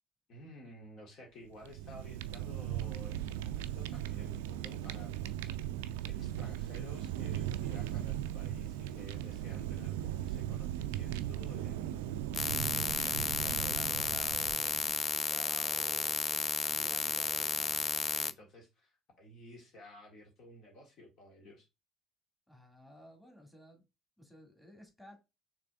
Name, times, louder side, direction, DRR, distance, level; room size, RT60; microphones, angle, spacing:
voice 1, 0.3-5.1 6.1-21.7, left 1 dB, 50° left, 1.6 m, -53 dB
Fire, 1.5-15.1, right 12 dB, 70° right, 0.3 m, -38 dB
sound 1, 12.3-18.3, left 4 dB, 25° left, 0.4 m, -33 dB
voice 2, 22.5-23.8 24.2-25.2, equal, 5° left, 2.0 m, -56 dB
6.6 x 3.3 x 2.3 m
figure-of-eight pair, 60°, 0 cm